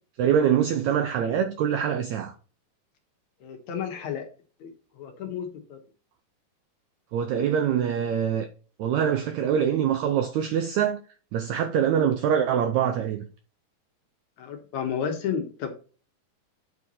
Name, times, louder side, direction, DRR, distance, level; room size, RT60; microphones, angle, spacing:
voice 1, 0.2-2.3 7.1-8.5 8.8-11.0 11.3-13.2, right 8 dB, 80° right, 1.7 m, -24 dB
voice 2, 3.4-4.2 4.6-4.7 5.0-5.8 14.4-15.7, left 7 dB, 65° left, 2.3 m, -32 dB
8.4 x 4.6 x 4.2 m
omnidirectional pair, 4.0 m